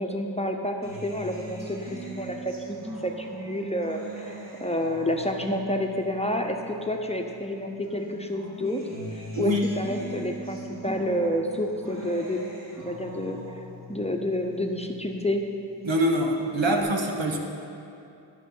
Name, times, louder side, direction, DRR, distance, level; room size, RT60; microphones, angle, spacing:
voice 1, 0.0-8.8 9.1-12.4 12.7-13.4 13.9-15.4, left 1 dB, 15° left, 3 dB, 0.8 m, -29 dB
Acoustic guitar, 0.8-7.5 7.8-15.5 15.9-16.8, right 1 dB, 45° right, 2.5 m, -41 dB
voice 2, 9.3-9.7 15.8-17.4, equal, 80° right, 2 dB, 1.1 m, -24 dB
12.5 x 6.3 x 5.6 m, 2.7 s
wide cardioid pair, 55°, 45 cm